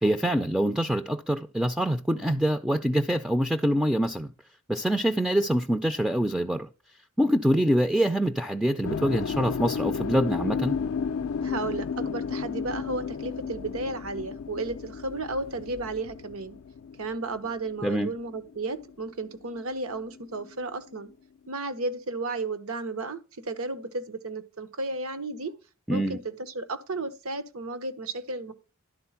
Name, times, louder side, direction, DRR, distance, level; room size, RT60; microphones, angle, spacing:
voice 1, 0.0-4.3 4.7-6.7 7.2-10.8 17.8-18.1 25.9-26.2, equal, 5° right, 0.4 m, -25 dB
sound 1, 8.8-18.9 19.2-20.9, left 6 dB, 75° left, 0.4 m, -33 dB
voice 2, 11.4-16.6 17.0-21.1 21.5-25.5 25.9-28.5, right 3 dB, 80° right, 1.0 m, -33 dB
11.5 x 4.0 x 5.7 m
head